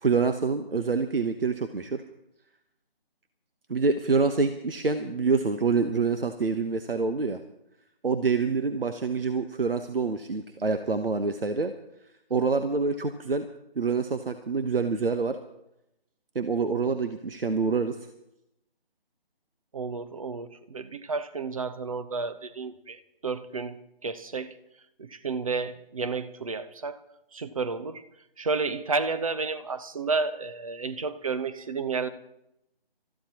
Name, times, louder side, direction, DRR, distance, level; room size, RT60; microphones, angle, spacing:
voice 1, 0.0-2.0 3.7-7.4 8.0-11.7 12.3-13.4 13.8-15.4 16.3-18.0, right 4 dB, 70° right, 8 dB, 1.2 m, -26 dB
voice 2, 19.7-24.6 25.0-27.0 27.3-28.0 28.4-32.1, right 4 dB, 35° right, 12 dB, 0.9 m, -31 dB
29.0 x 14.5 x 3.0 m, 0.86 s
figure-of-eight pair, 155°, 30 cm